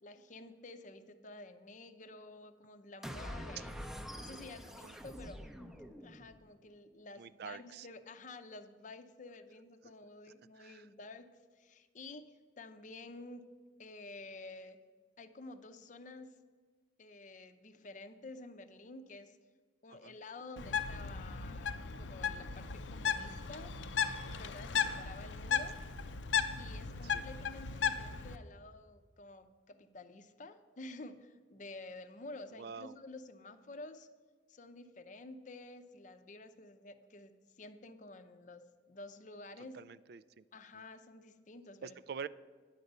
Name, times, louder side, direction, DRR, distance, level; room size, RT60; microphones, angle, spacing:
voice 1, 0.0-3.9 4.2-5.4 6.0-13.5 13.8-14.8 15.2-16.3 17.0-19.4 19.8-23.7 24.3-25.8 26.6-34.1 34.5-39.8 40.5-42.0, left 2 dB, 45° left, 9 dB, 0.6 m, -51 dB
sound 1, 3.0-6.4, equal, 5° right, 0.6 m, -46 dB
voice 2, 7.2-7.9 10.6-10.9 19.9-20.1 24.9-25.0 27.0-27.2 32.6-32.9 39.7-40.4 41.8-42.3, right 6 dB, 60° right, 18 dB, 0.3 m, -46 dB
Bird, 20.6-28.4, left 6 dB, 90° left, 0.6 m, -36 dB
10.5 x 5.4 x 8.0 m, 1.5 s
head